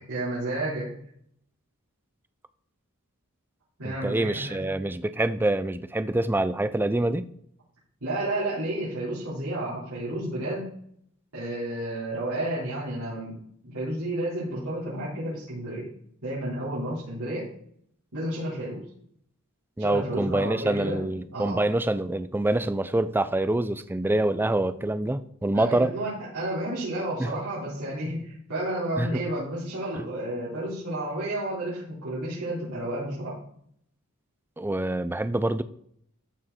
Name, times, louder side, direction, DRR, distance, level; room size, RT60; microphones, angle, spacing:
voice 1, 0.1-0.9 3.8-4.7 8.0-10.7 11.3-13.3 13.6-15.9 16.2-17.5 18.1-18.8 19.8-21.0 21.3-21.6 25.5-33.4, right 1 dB, 75° right, 4.3 m, -31 dB
voice 2, 3.8-7.3 19.8-25.9 27.2-27.3 29.0-29.2 34.6-35.6, right 1 dB, 10° right, 0.4 m, -26 dB
14.0 x 5.0 x 4.3 m
head